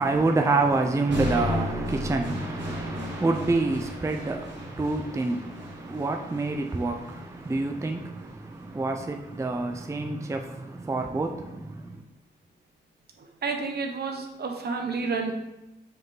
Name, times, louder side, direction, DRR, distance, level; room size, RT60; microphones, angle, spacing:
voice 1, 0.0-12.0, right 3 dB, 15° right, 0.5 m, -28 dB
sound 1, 1.1-9.1, equal, 90° right, 1.7 m, -35 dB
voice 2, 13.2-15.3, right 4 dB, 65° right, 1.1 m, -30 dB
6.2 x 4.8 x 3.8 m
cardioid pair, 100°, 18 cm